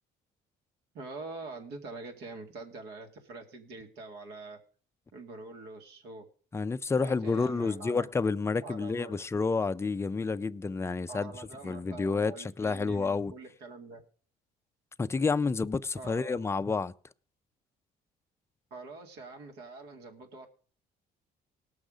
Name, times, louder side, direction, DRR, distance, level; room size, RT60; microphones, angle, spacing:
voice 1, 0.9-4.6 5.1-6.3 7.0-8.1 8.6-9.2 11.1-14.0 16.0-16.4 18.7-20.5, right 3 dB, 80° right, 2.2 m, -45 dB
voice 2, 6.5-11.3 11.6-13.3 15.0-16.9, left 4 dB, 15° left, 0.4 m, -29 dB
17.5 x 6.3 x 5.0 m
cardioid pair, 110°, 17 cm